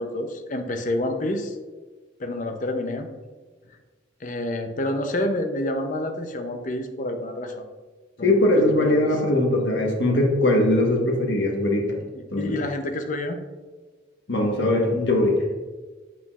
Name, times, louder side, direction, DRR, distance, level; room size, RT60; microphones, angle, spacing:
voice 1, 0.0-1.6 2.2-3.1 4.2-7.7 8.2-9.1 12.1-13.4, left 1 dB, 45° left, 7 dB, 0.6 m, -28 dB
voice 2, 8.2-12.0 12.3-12.6 14.3-15.4, left 1 dB, 70° left, 1 dB, 1.2 m, -21 dB
7.4 x 5.7 x 2.4 m, 1.3 s
head